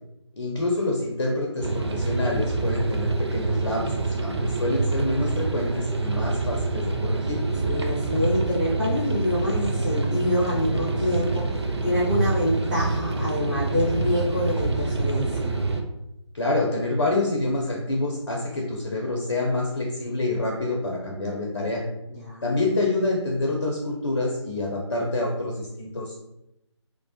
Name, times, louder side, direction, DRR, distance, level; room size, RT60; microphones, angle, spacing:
voice 1, 0.3-7.4 16.3-21.8 22.4-26.2, left 2 dB, 50° left, -1 dB, 0.5 m, -27 dB
sound 1, 1.6-15.8, right 3 dB, 60° right, 0.4 m, -26 dB
voice 2, 7.6-11.4 11.8-15.5 22.1-22.6, left 1 dB, 25° right, -14 dB, 0.9 m, -26 dB
3.0 x 2.0 x 2.8 m, 0.86 s
figure-of-eight pair, 155°, 16 cm